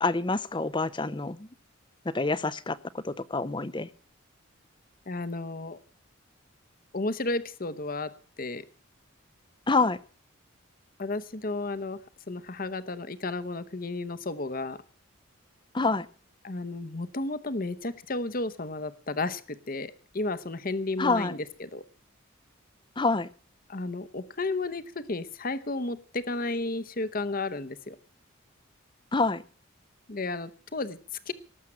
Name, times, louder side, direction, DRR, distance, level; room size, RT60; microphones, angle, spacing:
voice 1, 0.0-1.5 2.1-3.9 9.7-10.0 15.7-16.1 21.0-21.3 23.0-23.3 29.1-29.4, left 3 dB, 20° left, 17 dB, 0.6 m, -27 dB
voice 2, 5.1-5.8 6.9-8.6 11.0-12.0 12.3-14.8 16.4-21.8 23.7-28.0 30.1-31.0 31.3-31.4, left 2 dB, 45° left, 13 dB, 0.9 m, -33 dB
18.5 x 7.4 x 8.6 m, 0.41 s
head